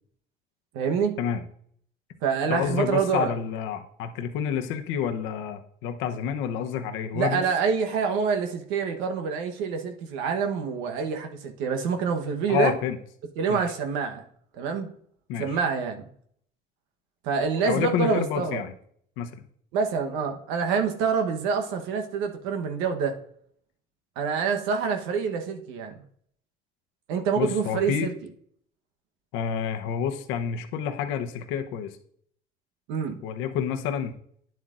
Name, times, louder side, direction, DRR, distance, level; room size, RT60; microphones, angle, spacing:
voice 1, 0.7-1.1 2.2-3.3 7.1-12.7 13.4-14.2 14.6-14.9 15.4-16.1 17.2-18.6 19.7-23.1 24.2-25.9 27.1-28.1 32.9-33.2, right 6 dB, 85° right, 1.1 m, -26 dB
voice 2, 2.5-7.4 12.5-13.0 13.5-13.6 15.3-15.6 17.7-18.7 19.2-19.4 27.4-28.1 29.3-31.9 33.2-34.1, left 8 dB, 80° left, 0.9 m, -29 dB
9.9 x 7.5 x 2.5 m
cardioid pair, 110°, 20 cm